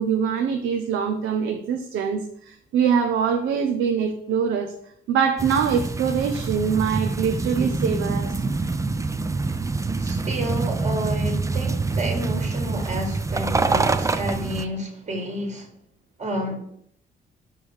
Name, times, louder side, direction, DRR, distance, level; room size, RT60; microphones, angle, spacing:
voice 1, 0.0-4.7 5.1-8.4, right 7 dB, 85° right, 5 dB, 0.7 m, -23 dB
sound 1, 5.4-14.6, right 3 dB, 15° right, 0.5 m, -25 dB
voice 2, 10.0-15.7 16.2-16.6, right 1 dB, 35° right, 2 dB, 1.8 m, -30 dB
5.3 x 4.7 x 6.3 m, 0.69 s
cardioid pair, 90°, 20 cm